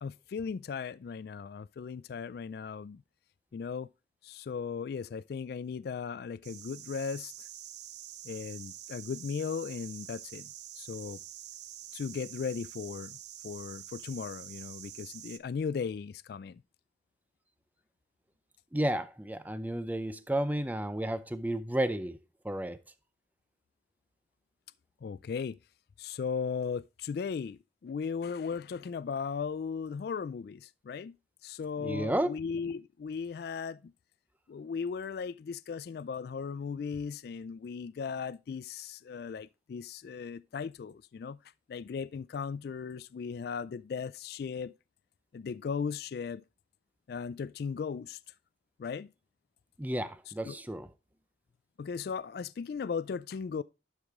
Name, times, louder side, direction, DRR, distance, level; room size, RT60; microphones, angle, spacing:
voice 1, 0.0-3.0 3.5-3.9 4.2-7.5 8.2-11.2 11.9-13.2 13.4-16.6 25.0-25.6 26.0-31.2 31.4-33.9 34.5-41.4 41.7-44.7 45.3-46.4 47.1-48.2 48.8-49.1 50.4-50.6 51.8-53.6, left 6 dB, 55° left, 0.3 m, -37 dB
sound 1, 6.4-15.4, right 12 dB, 65° right, 0.6 m, -47 dB
voice 2, 18.7-22.2 22.4-22.8 31.8-32.4 49.8-50.9, right 1 dB, 10° right, 0.5 m, -32 dB
11.5 x 4.9 x 3.6 m
head